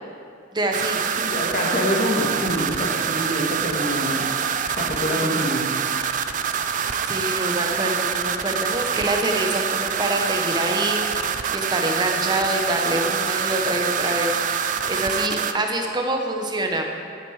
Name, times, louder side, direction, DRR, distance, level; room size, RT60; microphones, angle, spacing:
voice 1, 0.5-1.0 7.0-11.2 11.5-14.3 14.9-16.9, right 1 dB, 20° right, 3 dB, 0.9 m, -25 dB
sound 1, 0.7-15.5, right 7 dB, 40° right, 0.4 m, -25 dB
voice 2, 1.2-5.7, equal, 40° left, -2 dB, 1.7 m, -26 dB
10.5 x 8.0 x 4.9 m, 2.5 s
head